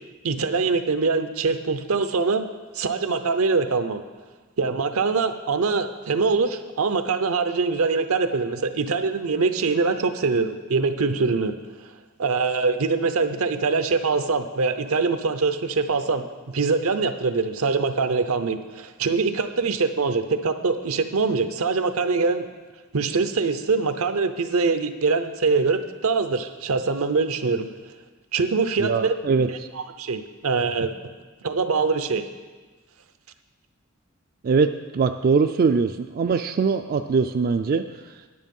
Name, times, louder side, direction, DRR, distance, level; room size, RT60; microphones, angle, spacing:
voice 1, 0.2-2.5 2.7-4.0 4.6-11.5 12.2-16.2 16.5-22.5 22.9-27.7 28.3-29.1 29.5-30.9 31.4-32.2, right 4 dB, 80° right, 9 dB, 0.7 m, -23 dB
voice 2, 28.8-29.5 34.4-38.0, right 5 dB, 45° right, 7 dB, 0.3 m, -22 dB
9.7 x 8.6 x 5.4 m, 1.3 s
head